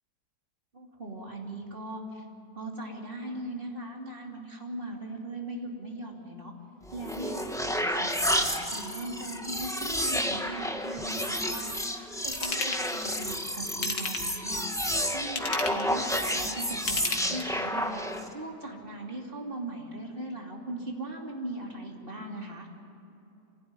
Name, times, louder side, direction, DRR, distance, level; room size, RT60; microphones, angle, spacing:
voice 1, 0.7-2.2 2.5-6.5 6.9-18.0 18.3-22.7, right 1 dB, 35° right, 0 dB, 3.0 m, -39 dB
sound 1, 6.9-18.3, equal, ahead, 1.0 m, -31 dB
Ratchet pawl / Tools, 12.3-12.8 13.7-14.4 15.2-15.9 16.7-17.7 18.2-18.3, left 4 dB, 65° left, 2.1 m, -33 dB
25.0 x 16.0 x 9.7 m, 2.8 s
omnidirectional pair, 1.7 m